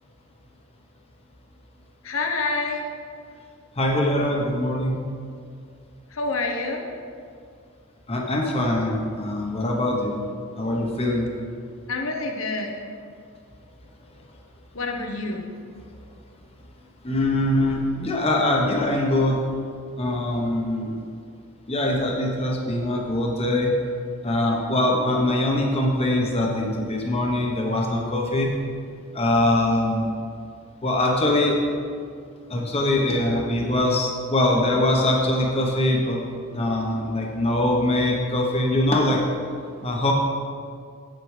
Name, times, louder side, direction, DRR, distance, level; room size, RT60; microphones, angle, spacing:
voice 1, 2.0-2.8 6.1-6.8 11.9-12.8 14.7-15.5, left 3 dB, 75° left, 3 dB, 1.0 m, -27 dB
voice 2, 3.8-5.0 8.1-10.2 10.6-11.3 17.0-19.4 20.0-21.0 21.7-23.7 24.2-28.5 29.1-30.1 30.8-31.6 32.5-36.2 36.5-39.2 39.8-40.1, left 1 dB, 30° left, -1 dB, 1.0 m, -23 dB
8.0 x 7.7 x 4.9 m, 2.2 s
head